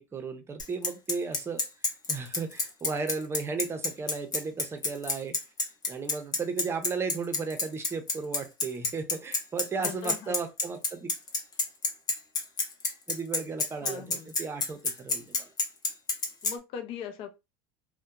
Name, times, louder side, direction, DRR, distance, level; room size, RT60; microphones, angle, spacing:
voice 1, 0.0-1.6 2.1-5.3 5.9-11.1 13.1-15.4, right 4 dB, 20° right, 0.6 m, -35 dB
Bicycle, 0.6-16.5, left 3 dB, 35° left, 0.8 m, -28 dB
voice 2, 9.8-10.4 13.8-14.3 16.4-17.4, left 8 dB, 55° left, 0.5 m, -40 dB
2.7 x 2.1 x 2.2 m
supercardioid pair, 105°, 11 cm